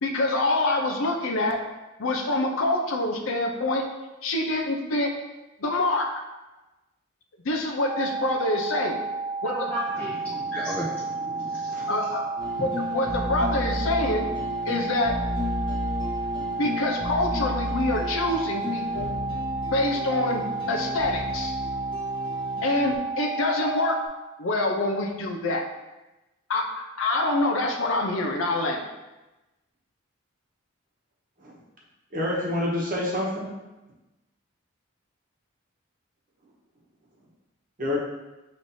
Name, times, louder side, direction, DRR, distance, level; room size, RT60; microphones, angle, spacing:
voice 1, 0.0-1.6 2.0-3.9 4.2-5.1 5.6-6.1 7.4-9.0 9.4-9.5 11.9-12.2 12.6-14.3 14.7-15.1 16.6-19.1 19.7-20.4 20.7-21.5 22.6-24.0 24.4-25.6 26.5-28.8, left 2 dB, 80° left, 2 dB, 0.6 m, -26 dB
sound 1, 7.8-24.1, right 4 dB, 40° left, 1.4 m, -32 dB
voice 2, 9.4-12.2, equal, 5° left, -5 dB, 0.3 m, -35 dB
sound 2, 12.4-23.0, left 2 dB, 25° left, 0.9 m, -33 dB
voice 3, 32.1-33.5 37.8-38.0, left 1 dB, 40° right, -3 dB, 1.0 m, -27 dB
5.8 x 3.2 x 2.7 m, 1.0 s
head